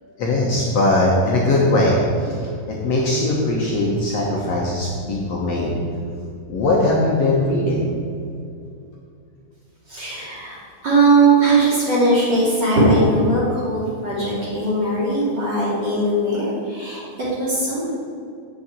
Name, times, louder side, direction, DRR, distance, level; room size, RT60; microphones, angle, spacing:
voice 1, 0.0-2.4 2.7-5.8 6.5-7.9, left 1 dB, 60° left, -3 dB, 2.0 m, -20 dB
voice 2, 9.9-17.0 17.4-17.9, right 2 dB, 35° right, -7 dB, 2.9 m, -19 dB
7.9 x 6.8 x 8.2 m, 2.4 s
omnidirectional pair, 3.9 m